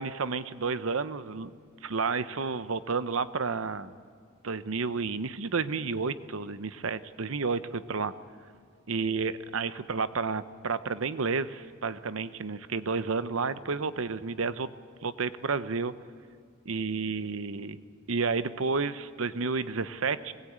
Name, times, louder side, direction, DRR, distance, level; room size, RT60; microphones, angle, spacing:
voice 1, 0.0-1.5 1.8-3.9 4.4-8.1 8.9-14.7 15.0-15.9 16.6-17.8 18.1-20.3, right 4 dB, 70° right, 14 dB, 0.8 m, -31 dB
21.5 x 19.5 x 8.8 m, 2.2 s
head